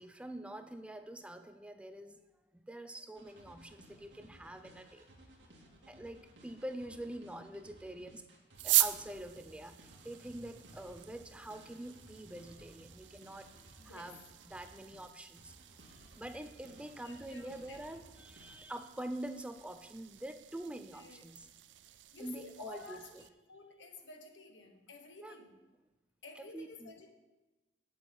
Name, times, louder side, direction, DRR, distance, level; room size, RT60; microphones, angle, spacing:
voice 1, 0.0-2.2 2.5-5.0 5.9-8.3 8.6-13.5 13.8-14.2 14.4-15.5 15.9-21.5 22.2-23.0 25.2-25.4 26.3-26.9, right 1 dB, 5° right, 8 dB, 0.4 m, -45 dB
sound 1, 3.1-15.0 15.4-18.6, right 1 dB, 90° right, 1.9 m, -59 dB
sound 2, 8.5-23.3, right 15 dB, 70° right, 0.5 m, -40 dB
voice 2, 13.8-14.2 16.9-17.8 20.7-21.2 21.9-25.6 26.2-27.2, left 3 dB, 80° left, 5 dB, 1.2 m, -52 dB
8.6 x 7.3 x 5.6 m, 1.1 s
head